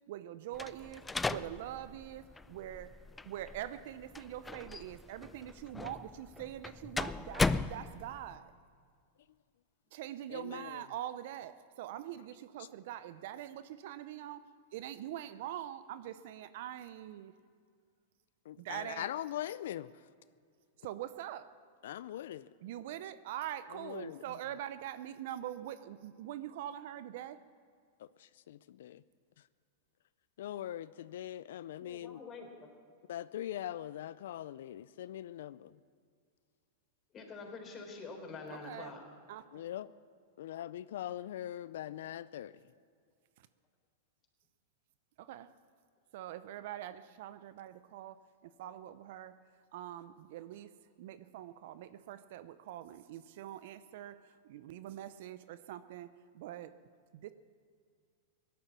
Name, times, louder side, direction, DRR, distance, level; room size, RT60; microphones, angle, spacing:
voice 1, 0.1-3.0 3.2-8.5 9.9-17.3 18.6-19.1 20.8-21.5 22.6-27.4 38.5-38.9 39.3-39.7 43.4-43.5 45.2-45.5 46.1-49.4 49.7-50.7 51.0-56.8 57.1-57.3, right 12 dB, 60° right, 13 dB, 0.6 m, -44 dB
sound 1, 0.5-8.4, left 3 dB, 10° left, 0.4 m, -38 dB
voice 2, 10.3-10.8 18.5-19.9 21.8-22.5 23.7-24.2 28.0-29.0 30.4-32.2 33.1-35.7 39.5-39.9 40.4-42.6, left 12 dB, 70° left, 17 dB, 0.4 m, -42 dB
voice 3, 31.8-32.5 37.1-39.0, left 4 dB, 30° left, 2 dB, 3.7 m, -46 dB
17.5 x 11.5 x 7.2 m, 2.1 s
hypercardioid pair, 115°, 0 cm